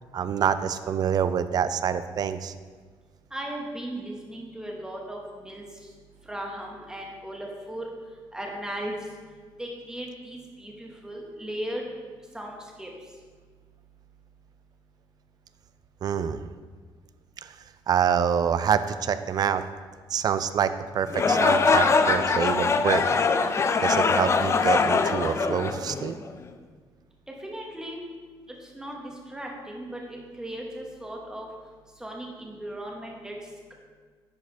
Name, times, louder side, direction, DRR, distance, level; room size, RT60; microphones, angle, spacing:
voice 1, 0.1-2.5 16.0-16.4 17.4-17.6 17.9-19.6 20.1-23.0 23.8-26.1, right 8 dB, 50° right, 12 dB, 0.4 m, -26 dB
voice 2, 3.3-5.6 6.2-7.9 8.3-9.0 9.6-11.8 12.3-12.9 27.4-28.0 28.6-31.5 32.0-33.3, right 1 dB, 10° right, -1 dB, 1.4 m, -37 dB
sound 1, 21.1-26.3, left 4 dB, 30° left, 0.4 m, -22 dB
10.5 x 4.8 x 3.4 m, 1.6 s
cardioid pair, 110°, 9 cm